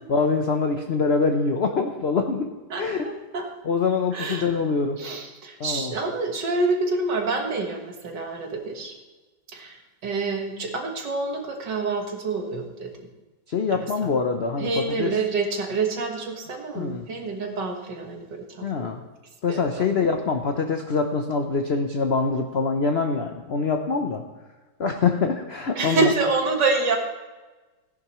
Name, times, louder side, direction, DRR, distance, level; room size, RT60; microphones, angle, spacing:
voice 1, 0.1-2.5 2.8-3.0 3.6-5.0 5.6-5.9 13.5-15.1 16.7-17.1 18.6-19.0 19.4-24.2 24.8-26.1, left 4 dB, 65° left, 4 dB, 0.6 m, -24 dB
voice 2, 4.1-4.5 5.0-8.9 9.5-12.9 13.7-14.1 14.6-18.9 19.5-20.1 25.7-27.0, right 3 dB, 60° right, 2 dB, 2.1 m, -27 dB
17.0 x 10.5 x 3.1 m, 1.2 s
omnidirectional pair, 2.1 m